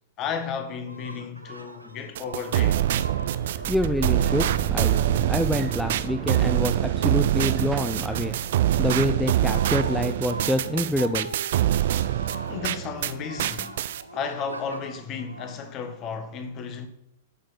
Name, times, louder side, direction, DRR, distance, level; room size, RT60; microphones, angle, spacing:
voice 1, 0.2-2.8 12.5-13.8 14.1-16.9, left 6 dB, 30° left, 1.6 m, -33 dB
sound 1, 0.8-7.0 7.3-16.3, right 2 dB, 85° right, 1.2 m, -42 dB
sound 2, 2.1-13.1 13.4-14.0, right 12 dB, 50° right, 0.6 m, -25 dB
sound 3, 3.3-8.8, right 7 dB, 20° right, 1.2 m, -34 dB
voice 2, 3.7-4.5 4.7-8.3 8.8-11.3, left 1 dB, ahead, 0.6 m, -26 dB
11.5 x 6.6 x 5.9 m
figure-of-eight pair, 100°, 0 cm